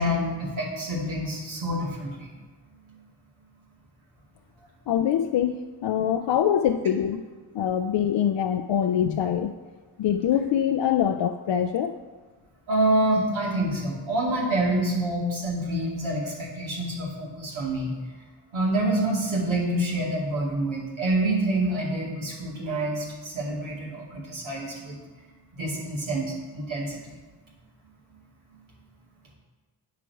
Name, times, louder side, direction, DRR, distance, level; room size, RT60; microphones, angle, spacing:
voice 1, 0.0-2.3 12.7-17.9 18.5-25.0 25.5-27.0, right 1 dB, 85° right, -4 dB, 2.3 m, -27 dB
voice 2, 4.9-7.3 7.5-9.5 10.0-11.9, left 9 dB, 65° left, 6 dB, 0.5 m, -24 dB
9.2 x 5.0 x 4.7 m, 1.3 s
cardioid pair, 45°, 46 cm